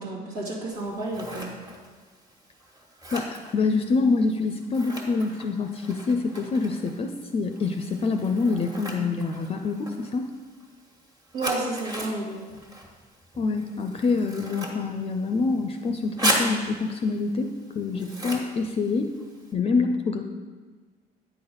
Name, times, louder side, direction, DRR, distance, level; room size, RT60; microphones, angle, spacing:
voice 1, 0.0-1.5 11.3-12.4, right 2 dB, 90° right, -5 dB, 2.0 m, -31 dB
Scissors, 0.7-19.5, right 1 dB, 20° right, 1.4 m, -37 dB
voice 2, 3.1-10.3 13.4-19.1 19.5-20.2, left 4 dB, 35° left, 6 dB, 0.5 m, -26 dB
9.0 x 4.0 x 5.3 m, 1.4 s
cardioid pair, 110°, 17 cm